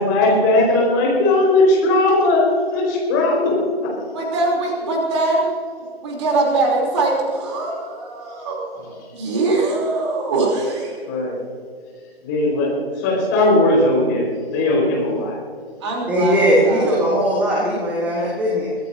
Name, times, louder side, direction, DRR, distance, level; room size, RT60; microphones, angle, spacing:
voice 1, 0.0-3.5 11.1-11.3 12.2-12.7 12.9-15.4, left 2 dB, 20° left, -2 dB, 4.5 m, -18 dB
voice 2, 4.1-5.6 6.0-11.0 15.8-17.1, right 2 dB, 25° right, -1 dB, 3.3 m, -22 dB
voice 3, 16.1-18.7, equal, 5° right, -4 dB, 1.2 m, -19 dB
24.0 x 14.5 x 2.7 m, 2.1 s
figure-of-eight pair, 145°, 31 cm